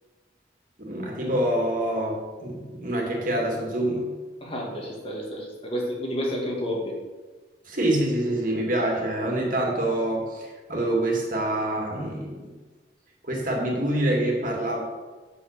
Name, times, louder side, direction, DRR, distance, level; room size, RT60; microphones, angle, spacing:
voice 1, 0.8-4.1 7.7-12.5 13.2-14.8, right 1 dB, 50° right, -1 dB, 2.2 m, -26 dB
voice 2, 4.4-6.9, equal, 30° left, -2 dB, 2.0 m, -30 dB
7.6 x 6.3 x 6.7 m, 1.3 s
head